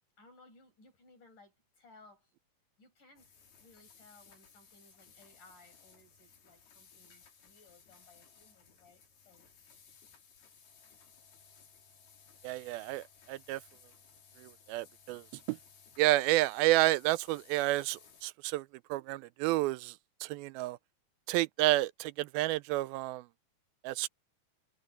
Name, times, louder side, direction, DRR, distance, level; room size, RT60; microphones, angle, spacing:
voice 1, 0.2-2.3 2.8-3.3 3.6-9.5, left 2 dB, 55° left, 8.8 m, -61 dB
sound 1, 3.2-18.2, left 6 dB, 85° left, 6.4 m, -60 dB
voice 2, 12.4-13.6 14.4-15.2 15.5-15.6 16.0-19.9 20.2-20.8 21.3-23.2 23.8-24.1, right 17 dB, 80° right, 2.4 m, -30 dB
omnidirectional pair, 4.4 m